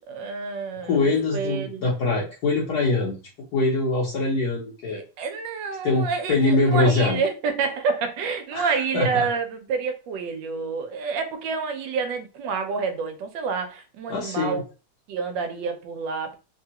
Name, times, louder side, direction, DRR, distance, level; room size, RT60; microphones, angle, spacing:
voice 1, 0.1-1.8 4.9-14.6 15.1-16.4, right 5 dB, 80° right, 1.3 m, -28 dB
voice 2, 0.8-3.2 3.5-5.0 5.8-7.2 8.5-9.3 14.1-14.6, left 3 dB, 65° left, 1.2 m, -23 dB
3.5 x 2.3 x 2.8 m
omnidirectional pair, 2.0 m